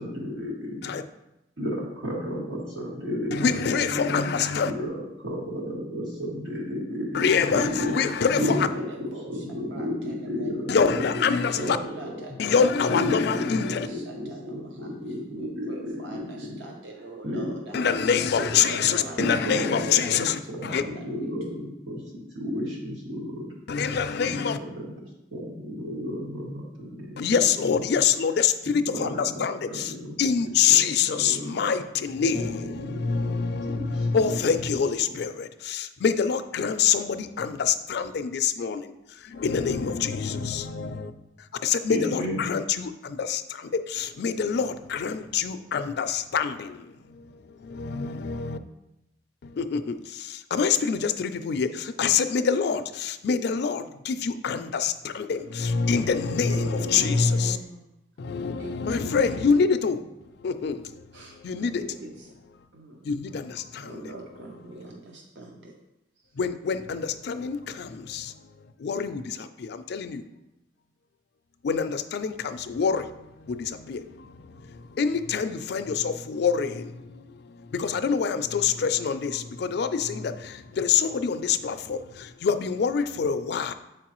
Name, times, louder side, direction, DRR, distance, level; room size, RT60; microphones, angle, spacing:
voice 1, 0.0-0.7 1.6-4.1 4.6-7.2 7.5-8.0 8.4-8.9 9.3-11.3 11.6-11.7 12.0-12.1 12.9-15.7 16.1-16.5 17.2-17.5 18.3-18.4 19.2-20.2 20.5-23.5 23.8-24.0 24.3-24.4 24.7-24.9 25.3-27.4 28.7-30.1 30.7-30.8 31.0-31.6 32.3-32.5 32.8-34.1 41.9-42.4, left 1 dB, 90° right, 2.0 m, -32 dB
voice 2, 3.3-4.7 7.1-8.7 10.7-11.8 12.4-13.9 17.7-20.8 23.7-24.6 27.2-29.9 30.2-38.9 39.2-41.1 41.6-48.6 49.4-57.6 58.3-60.0 60.4-61.0 61.4-61.8 63.0-63.9 66.4-68.3 68.8-70.2 71.6-83.7, left 6 dB, 60° left, 0.4 m, -26 dB
voice 3, 7.7-10.5 11.5-12.9 13.3-21.6 56.4-57.8 58.6-59.7 61.1-62.3 62.7-63.1 63.7-65.8 66.2-66.4, right 2 dB, 70° right, 0.7 m, -43 dB
7.6 x 4.6 x 3.0 m
head